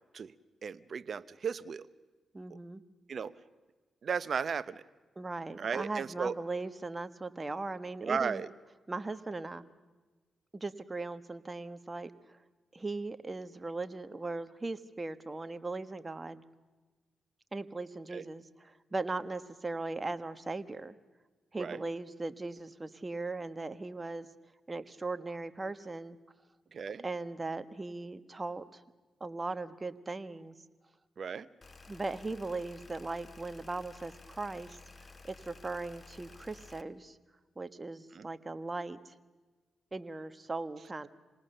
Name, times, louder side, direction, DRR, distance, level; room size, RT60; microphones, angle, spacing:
voice 1, 0.6-1.9 3.1-3.3 4.0-4.8 5.6-6.4 8.0-8.5 18.1-18.2 21.6-21.8 26.7-27.0 31.2-31.5 38.1-38.3, right 6 dB, 60° right, 15 dB, 0.9 m, -35 dB
voice 2, 2.3-2.8 5.2-8.4 8.9-9.6 10.5-12.4 12.7-16.4 17.5-21.0 21.5-24.3 24.7-26.2 27.0-28.8 29.2-30.5 31.9-37.2 37.6-39.1 39.9-41.1, right 3 dB, 30° right, 11 dB, 1.4 m, -39 dB
sound 1, 31.6-36.8, left 3 dB, 35° left, 1.4 m, -53 dB
27.5 x 19.0 x 6.8 m, 1.3 s
supercardioid pair, 50°, 0 cm